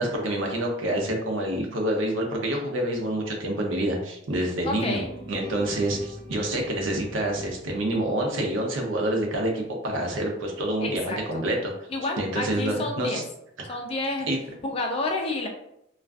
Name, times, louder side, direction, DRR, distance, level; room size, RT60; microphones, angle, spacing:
voice 1, 0.0-5.0 5.3-11.7 12.2-13.2 13.7-13.8 14.3-14.4, right 1 dB, 75° right, 1 dB, 0.6 m, -27 dB
voice 2, 4.6-5.1 10.8-11.4 11.9-13.2 13.7-14.3 14.6-15.5, left 2 dB, 30° left, 1 dB, 0.4 m, -29 dB
sound 1, 4.9-9.0, left 2 dB, 20° right, 0.7 m, -42 dB
2.4 x 2.3 x 2.3 m, 0.79 s
head